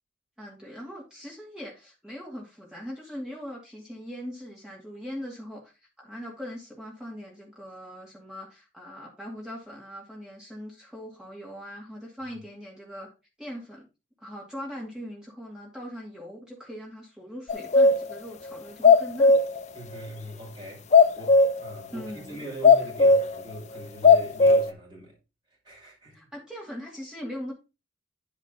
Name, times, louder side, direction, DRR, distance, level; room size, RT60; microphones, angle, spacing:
voice 1, 0.4-5.7 6.0-13.1 13.4-13.9 14.2-19.4 21.9-22.4 26.1-27.5, equal, 5° right, 2.3 m, -40 dB
sound 1, 17.5-18.1 18.5-18.6 18.8-19.6 20.9-21.7 22.6-23.4 24.0-24.7, left 4 dB, 35° left, 0.4 m, -17 dB
voice 2, 19.7-25.2 25.6-26.3, right 1 dB, 20° right, 5.3 m, -42 dB
10.0 x 5.0 x 3.8 m
head